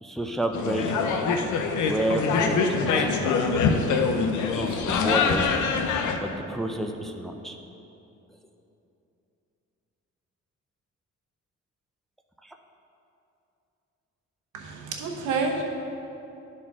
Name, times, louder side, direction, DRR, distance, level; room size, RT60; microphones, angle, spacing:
voice 1, 0.0-1.2 1.8-3.2 4.5-5.4 6.2-7.6 12.4-12.6, right 1 dB, ahead, 3 dB, 0.5 m, -30 dB
sound 1, 0.5-6.2, left 5 dB, 75° left, 0.7 m, -24 dB
voice 2, 14.5-15.6, right 4 dB, 85° right, 1 dB, 1.0 m, -29 dB
11.5 x 4.3 x 3.6 m, 2.8 s
cardioid pair, 90°, 30 cm